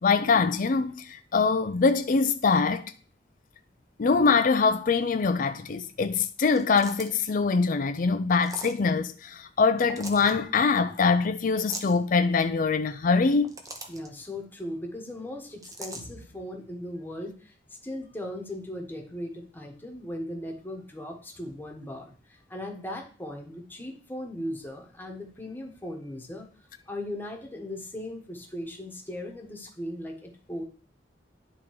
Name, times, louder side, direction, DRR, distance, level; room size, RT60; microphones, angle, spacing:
voice 1, 0.0-2.8 4.0-13.5, left 4 dB, 50° left, 0.5 m, -23 dB
sound 1, 6.5-7.3 8.4-8.8 9.8-10.3 11.6-12.0 13.2-14.1 15.6-16.0, right 2 dB, 20° right, 0.9 m, -40 dB
voice 2, 13.9-26.5 26.9-30.6, left 1 dB, 10° left, 1.2 m, -38 dB
10.0 x 3.7 x 4.7 m
head